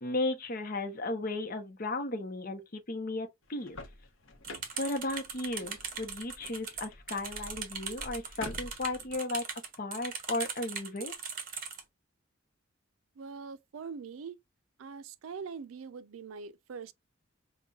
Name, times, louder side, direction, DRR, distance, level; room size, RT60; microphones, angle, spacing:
voice 1, 0.0-3.8 4.8-9.5 9.8-11.1, left 2 dB, 45° left, 0.7 m, -35 dB
sound 1, 3.4-9.1, left 2 dB, 80° left, 0.8 m, -48 dB
sound 2, 4.4-11.8, right 6 dB, 45° right, 1.0 m, -40 dB
voice 2, 13.2-14.4 14.8-16.9, right 5 dB, 85° right, 0.4 m, -43 dB
5.3 x 2.2 x 2.3 m
head